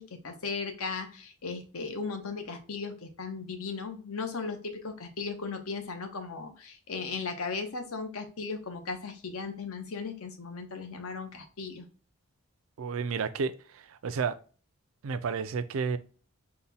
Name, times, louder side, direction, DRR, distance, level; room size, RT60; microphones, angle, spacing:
voice 1, 0.0-11.9, left 4 dB, 80° left, 0.8 m, -37 dB
voice 2, 12.8-13.5 14.0-14.4 15.0-16.0, right 5 dB, 65° right, 0.4 m, -30 dB
4.0 x 2.2 x 4.1 m
head